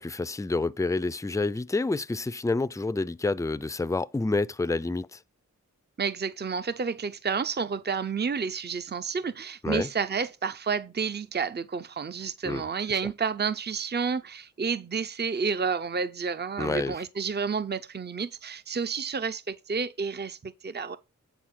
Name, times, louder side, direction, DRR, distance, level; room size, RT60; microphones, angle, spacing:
voice 1, 0.0-5.2 9.6-9.9 12.4-12.6 16.6-17.0, left 3 dB, 10° left, 0.5 m, -28 dB
voice 2, 6.0-21.0, right 5 dB, 30° right, 0.6 m, -30 dB
9.1 x 4.1 x 6.3 m
cardioid pair, 45°, 32 cm